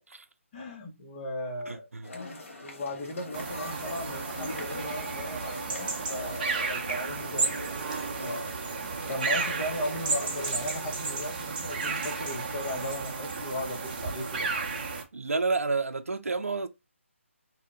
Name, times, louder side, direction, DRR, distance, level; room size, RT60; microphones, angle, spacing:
voice 1, 0.5-7.8 8.2-8.5 9.1-14.5, left 1 dB, 30° left, 0.8 m, -37 dB
voice 2, 1.7-2.1 15.1-16.7, right 3 dB, 90° right, 0.5 m, -30 dB
sound 1, 2.0-10.6, left 2 dB, 65° left, 1.3 m, -43 dB
sound 2, 3.3-15.0, right 4 dB, 40° right, 0.7 m, -33 dB
2.7 x 2.1 x 3.7 m
figure-of-eight pair, 155°, 7 cm